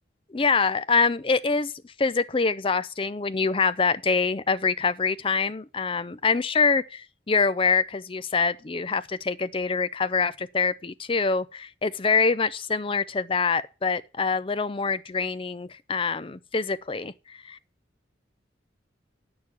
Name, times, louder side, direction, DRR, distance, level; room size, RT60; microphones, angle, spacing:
voice 1, 0.3-1.7 2.0-17.6, left 4 dB, 25° left, 0.5 m, -25 dB
8.7 x 6.7 x 7.3 m
head